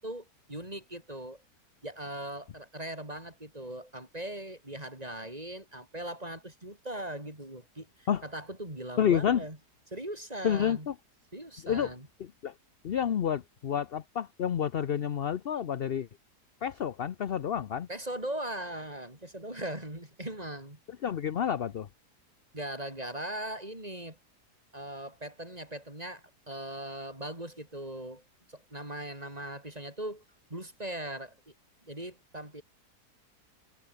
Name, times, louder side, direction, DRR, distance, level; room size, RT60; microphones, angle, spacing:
voice 1, 0.0-1.4 1.8-9.6 9.9-10.9 11.3-12.1 17.9-20.8 22.5-24.2 24.7-28.2 28.5-30.2 30.5-31.4 31.8-32.6, right 1 dB, 20° right, 5.7 m, -39 dB
voice 2, 9.0-9.4 10.4-10.9 11.6-11.9 12.2-12.5 12.8-16.1 16.6-17.9 21.0-21.9, left 9 dB, 55° left, 0.7 m, -29 dB
omnidirectional pair, 1.7 m